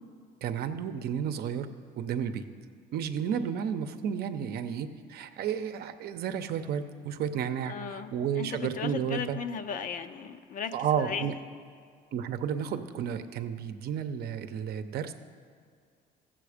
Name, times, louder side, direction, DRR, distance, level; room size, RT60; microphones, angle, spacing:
voice 1, 0.4-2.5 2.9-9.4 10.7-11.3 12.1-15.1, right 8 dB, 70° right, 9 dB, 0.7 m, -32 dB
voice 2, 7.6-11.3, left 6 dB, 50° left, 10 dB, 0.7 m, -36 dB
15.5 x 7.6 x 5.0 m, 2.1 s
cardioid pair, 110°, 17 cm